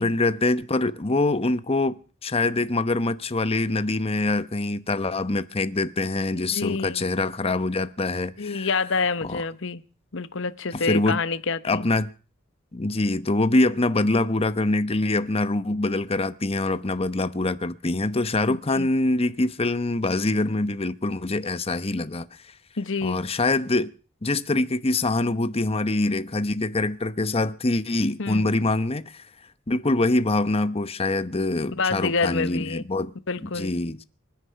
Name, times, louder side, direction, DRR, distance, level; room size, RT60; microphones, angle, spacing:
voice 1, 0.0-8.7 9.2-9.4 10.7-11.2 11.6-12.1 12.7-22.3 23.0-23.9 24.2-29.2 29.7-33.1 33.4-34.0, left 2 dB, 30° left, 0.9 m, -24 dB
voice 2, 6.5-7.0 8.4-9.8 10.1-11.8 18.5-18.9 22.8-23.2 28.2-28.5 31.8-32.8 33.3-33.7, left 4 dB, 65° left, 1.0 m, -27 dB
25.0 x 10.0 x 5.8 m
head